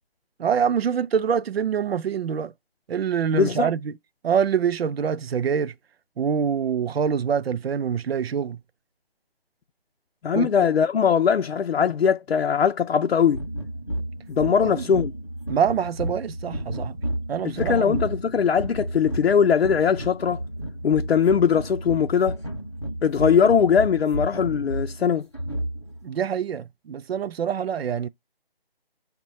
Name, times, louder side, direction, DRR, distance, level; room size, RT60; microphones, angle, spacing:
voice 1, 0.4-2.5 2.9-3.9 4.2-5.7 6.2-8.6 10.3-10.5 14.6-14.8 15.5-17.0 17.3-18.0 26.0-28.1, right 7 dB, 75° right, 0.5 m, -25 dB
voice 2, 3.3-3.7 10.2-13.4 14.3-15.1 17.4-20.5 20.8-22.4 23.0-25.3, left 7 dB, 80° left, 0.5 m, -21 dB
sound 1, 13.3-26.0, right 1 dB, 30° left, 0.5 m, -32 dB
5.5 x 2.2 x 4.1 m
figure-of-eight pair, 175°, 31 cm